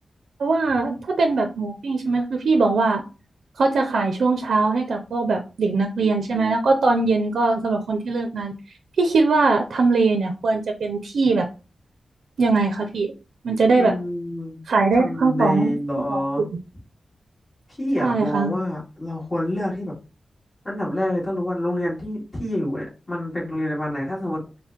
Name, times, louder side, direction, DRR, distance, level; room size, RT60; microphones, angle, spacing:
voice 1, 0.4-3.0 3.6-8.5 9.0-11.5 12.4-13.1 13.4-13.9 14.7-15.7 16.1-16.5 18.0-18.5, right 3 dB, 80° right, 4 dB, 0.5 m, -21 dB
voice 2, 13.8-14.6 14.9-16.4 17.8-19.9 20.6-24.6, left 1 dB, 25° left, -6 dB, 2.0 m, -27 dB
4.4 x 2.2 x 3.6 m, 0.32 s
wide cardioid pair, 140°, 0 cm